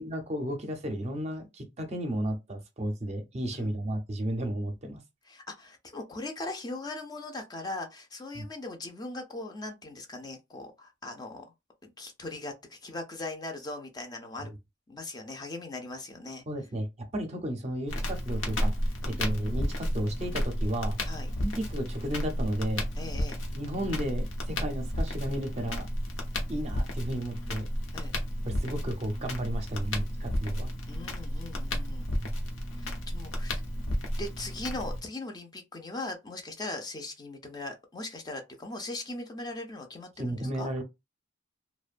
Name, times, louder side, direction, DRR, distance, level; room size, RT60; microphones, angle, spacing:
voice 1, 0.0-5.0 8.3-8.5 16.5-18.7 19.1-21.0 21.3-22.8 23.5-25.9 26.5-27.7 28.5-30.7 32.2-32.3 40.2-40.8, right 1 dB, 35° right, 0.5 m, -33 dB
voice 2, 5.3-11.5 11.8-14.5 14.9-16.4 19.0-19.2 21.0-21.3 23.0-23.4 27.9-28.1 30.9-32.1 32.8-33.6 34.2-40.7, left 2 dB, 20° left, 0.4 m, -39 dB
Crackle, 17.9-35.0, equal, 85° left, 0.7 m, -32 dB
2.5 x 2.1 x 2.4 m
head